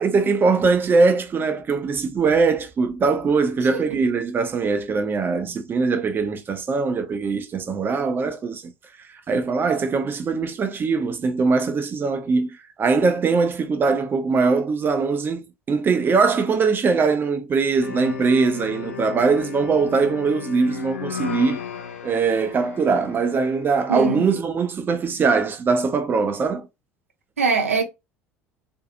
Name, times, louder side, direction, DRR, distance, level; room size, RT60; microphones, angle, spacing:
voice 1, 0.0-8.7 9.3-21.6 22.0-26.7, right 4 dB, 30° right, 0.6 m, -21 dB
sound 1, 17.8-23.8, left 7 dB, 80° left, 0.4 m, -35 dB
voice 2, 23.9-24.3 27.4-27.8, right 5 dB, 80° right, 0.6 m, -22 dB
2.6 x 2.3 x 2.7 m
figure-of-eight pair, 65°, 7 cm